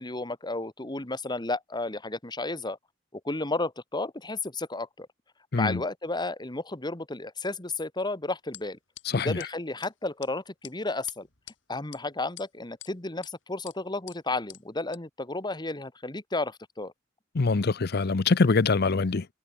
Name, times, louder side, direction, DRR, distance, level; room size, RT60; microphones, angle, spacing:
voice 1, 0.0-2.8 3.1-5.1 5.5-8.8 9.1-11.3 11.7-16.9, left 2 dB, 25° left, 1.8 m, -32 dB
sound 1, 8.5-8.6 9.0-9.1 9.4-9.5 9.8-9.9 10.2-10.3 10.6-10.7 11.1-11.5 11.9-12.0 12.4-12.9 13.2-13.3 13.7-13.8 14.1-14.2 14.5-14.6 14.9-15.0, left 14 dB, 75° left, 3.3 m, -45 dB
voice 2, 17.3-19.3, left 4 dB, 55° left, 0.6 m, -24 dB
head